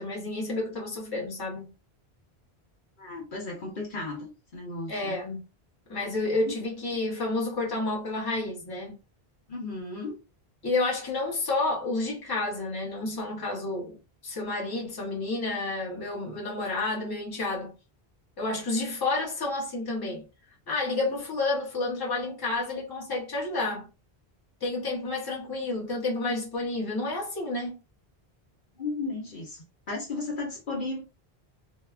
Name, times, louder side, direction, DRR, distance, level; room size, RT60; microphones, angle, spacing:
voice 1, 0.0-1.7 4.9-5.4 5.9-8.9 10.6-17.7 18.4-20.2 20.7-23.9 24.6-27.8, left 2 dB, 25° left, 0.9 m, -30 dB
voice 2, 3.0-5.2 9.5-10.2 21.1-21.2 28.8-31.0, left 3 dB, 55° left, 0.9 m, -35 dB
2.8 x 2.2 x 2.3 m
omnidirectional pair, 1.1 m